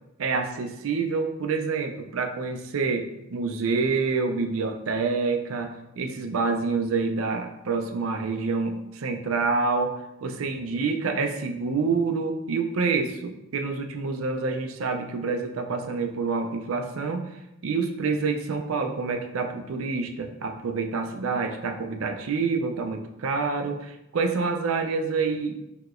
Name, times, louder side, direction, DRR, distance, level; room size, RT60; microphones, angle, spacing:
voice 1, 0.2-17.3 17.6-25.6, right 4 dB, 80° right, 5 dB, 0.4 m, -27 dB
4.6 x 2.9 x 2.5 m, 0.89 s
head